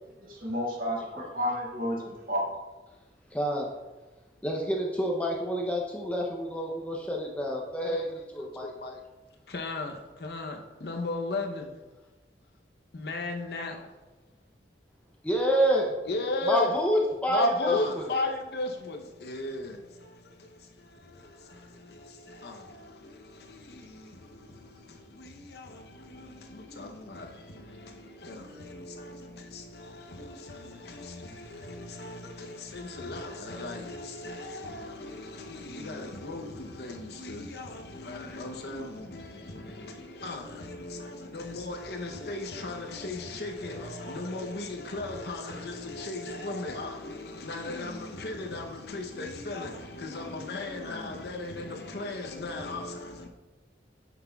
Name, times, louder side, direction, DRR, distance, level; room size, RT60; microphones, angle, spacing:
voice 1, 0.2-2.5, equal, 50° right, 1.7 m, -31 dB
voice 2, 3.3-3.7 4.4-8.0 8.4-8.7 15.2-15.9 16.5-18.0, equal, 10° left, 0.6 m, -28 dB
voice 3, 7.8-9.0 9.5-11.7 12.9-13.8 16.1-16.7 17.3-53.3, left 2 dB, 60° left, 0.7 m, -36 dB
9.1 x 6.0 x 2.3 m
head